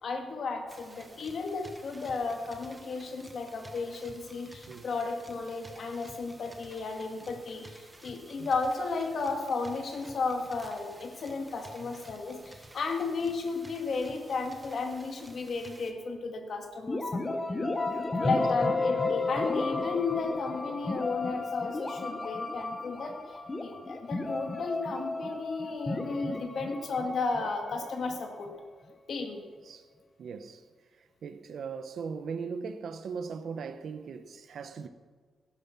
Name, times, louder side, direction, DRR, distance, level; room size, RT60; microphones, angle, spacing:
voice 1, 0.0-17.7 18.2-28.5 29.1-29.4, left 4 dB, 50° left, 2.0 m, -34 dB
sound 1, 0.7-15.9, right 1 dB, 10° right, 1.3 m, -52 dB
sound 2, 16.9-28.6, left 2 dB, 15° left, 0.9 m, -33 dB
voice 2, 30.2-30.6 31.2-34.9, right 5 dB, 55° right, 0.9 m, -39 dB
14.5 x 11.0 x 6.0 m
wide cardioid pair, 170°, 0 cm